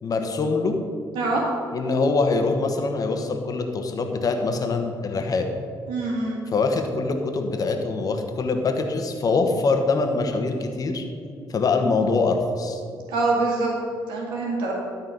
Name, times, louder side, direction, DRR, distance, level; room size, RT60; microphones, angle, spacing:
voice 1, 0.0-0.7 1.7-5.5 6.5-11.0 11.5-12.8, left 3 dB, 50° left, 5 dB, 1.3 m, -24 dB
voice 2, 5.9-6.4 13.1-13.7 14.1-14.7, right 3 dB, 85° right, -2 dB, 1.8 m, -24 dB
13.0 x 4.4 x 5.6 m, 2.5 s
supercardioid pair, 70°, 8 cm